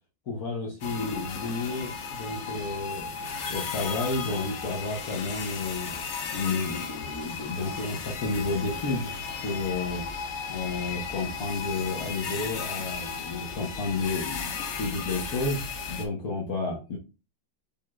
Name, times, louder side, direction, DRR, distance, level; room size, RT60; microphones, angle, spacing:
voice 1, 0.3-3.1 3.5-5.9 6.3-9.1 9.4-10.1 10.5-14.5 14.8-17.0, left 3 dB, 55° left, 0 dB, 1.3 m, -31 dB
sound 1, 0.8-16.1, left 5 dB, 80° left, 0.6 m, -35 dB
5.3 x 3.6 x 2.3 m, 0.30 s
omnidirectional pair, 2.1 m